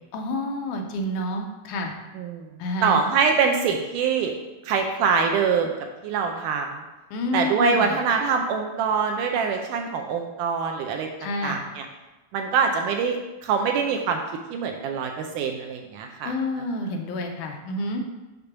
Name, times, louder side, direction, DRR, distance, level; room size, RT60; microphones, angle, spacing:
voice 1, 0.1-1.9 2.6-3.0 7.1-8.0 11.2-11.6 16.2-18.0, left 1 dB, 75° left, 3 dB, 1.9 m, -29 dB
voice 2, 2.2-2.5 2.8-4.3 4.6-5.7 6.0-6.7 7.3-11.1 11.4-11.9 12.3-13.2 13.4-14.2 14.5-16.3, right 5 dB, 80° right, 3 dB, 2.0 m, -24 dB
6.6 x 3.4 x 5.8 m, 1.1 s
omnidirectional pair, 4.0 m